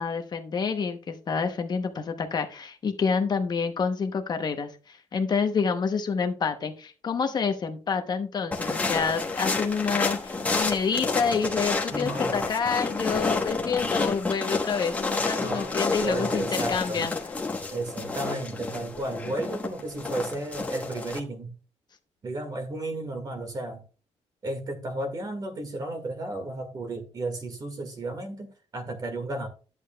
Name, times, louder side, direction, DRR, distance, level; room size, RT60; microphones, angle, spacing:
voice 1, 0.0-17.3, left 5 dB, 35° left, 6 dB, 0.8 m, -28 dB
sound 1, 8.5-21.2, left 3 dB, 10° left, 1.0 m, -30 dB
voice 2, 11.9-12.4 15.4-15.7 16.0-17.1 17.7-21.5 22.2-23.8 24.4-29.5, right 2 dB, 35° right, 6 dB, 1.7 m, -33 dB
11.0 x 8.3 x 2.2 m, 0.37 s
cardioid pair, 175°, 12 cm